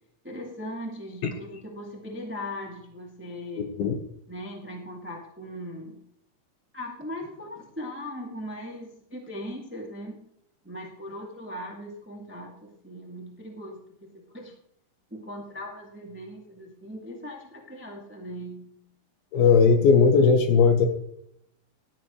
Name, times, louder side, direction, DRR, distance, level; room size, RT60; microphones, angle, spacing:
voice 1, 0.2-3.7 4.3-6.0 6.7-10.2 10.6-14.5 15.1-18.7, equal, 10° right, 0 dB, 0.6 m, -39 dB
voice 2, 3.6-4.0 19.3-20.9, left 5 dB, 75° left, 6 dB, 3.0 m, -18 dB
18.0 x 12.0 x 3.2 m, 0.74 s
omnidirectional pair, 4.4 m